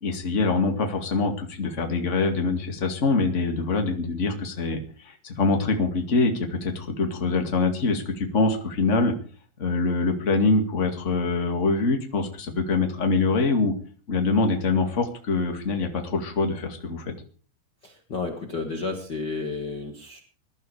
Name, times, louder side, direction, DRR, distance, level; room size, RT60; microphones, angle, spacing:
voice 1, 0.0-9.1 9.6-13.7 14.1-17.1, left 3 dB, 35° left, 4 dB, 1.2 m, -24 dB
voice 2, 17.8-20.2, left 4 dB, 55° left, 3 dB, 1.1 m, -32 dB
20.0 x 12.0 x 5.0 m, 0.42 s
omnidirectional pair, 5.0 m